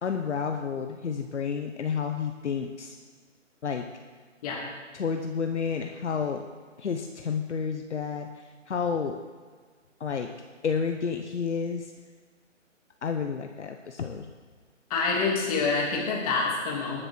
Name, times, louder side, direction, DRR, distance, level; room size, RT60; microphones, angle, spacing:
voice 1, 0.0-3.0 3.6-3.9 4.9-6.4 6.8-9.2 10.0-10.3 10.6-11.9 13.0-14.3, left 6 dB, 65° left, 5 dB, 1.1 m, -30 dB
voice 2, 14.9-17.0, left 4 dB, 30° left, -2 dB, 2.9 m, -27 dB
20.0 x 6.7 x 4.5 m, 1.6 s
hypercardioid pair, 150°, 38 cm